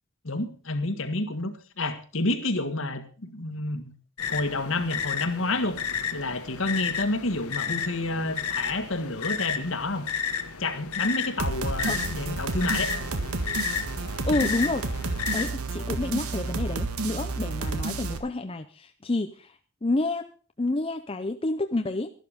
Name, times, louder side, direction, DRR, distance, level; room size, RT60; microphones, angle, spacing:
voice 1, 0.2-4.0 4.3-5.8 6.1-10.1 10.6-12.9, left 2 dB, 60° left, 9 dB, 1.7 m, -29 dB
sound 1, 4.2-15.5, left 7 dB, 85° left, 1.3 m, -32 dB
sound 2, 11.4-18.2, right 3 dB, 85° right, 1.6 m, -31 dB
voice 2, 14.2-15.0 15.3-20.3 20.6-22.1, left 2 dB, 25° left, 7 dB, 0.6 m, -29 dB
13.0 x 11.5 x 5.1 m, 0.38 s
head